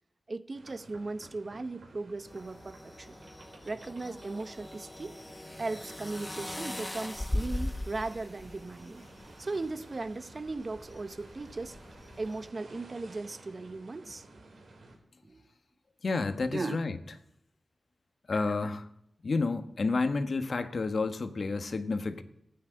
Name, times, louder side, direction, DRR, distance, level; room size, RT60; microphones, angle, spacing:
voice 1, 0.3-3.1 3.6-5.2 5.6-9.0 9.4-11.8 12.2-14.3 15.2-15.4 16.5-16.8, right 3 dB, 50° right, 0.8 m, -37 dB
sound 1, 0.5-15.0, right 2 dB, 85° right, 4.0 m, -54 dB
sound 2, 2.3-12.5, left 1 dB, 20° left, 0.8 m, -41 dB
voice 2, 16.0-17.0 18.3-18.9 19.2-22.2, left 3 dB, 70° left, 1.4 m, -30 dB
14.5 x 9.5 x 9.1 m
cardioid pair, 55°, 0 cm